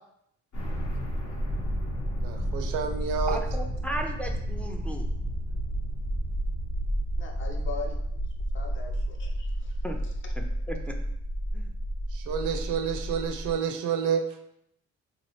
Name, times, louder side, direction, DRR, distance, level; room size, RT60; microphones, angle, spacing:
sound 1, 0.5-13.5, equal, 70° left, 0.9 m, -31 dB
voice 1, 2.2-3.4 12.1-14.2, right 7 dB, 85° right, 7 dB, 0.5 m, -29 dB
voice 2, 3.3-5.1 9.8-10.0 10.4-11.0 11.5-11.7, right 1 dB, 5° left, 3 dB, 0.3 m, -36 dB
voice 3, 7.2-8.2 8.5-9.7, left 4 dB, 40° left, 2 dB, 0.6 m, -40 dB
2.9 x 2.4 x 3.0 m, 0.75 s
cardioid pair, 90°, 30 cm